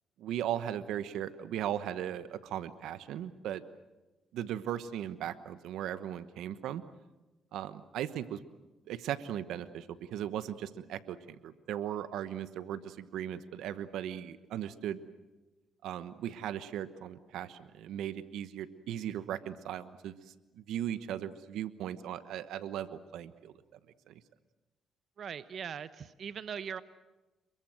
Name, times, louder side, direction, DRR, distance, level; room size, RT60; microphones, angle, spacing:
voice 1, 0.2-3.6 4.3-6.8 7.5-8.4 8.9-15.1 15.8-20.1 20.5-23.5 24.1-24.2, right 10 dB, 85° right, 13 dB, 1.1 m, -37 dB
voice 2, 25.2-26.8, right 7 dB, 55° right, 13 dB, 1.0 m, -40 dB
27.5 x 22.5 x 7.9 m, 1.1 s
cardioid pair, 90°, 0 cm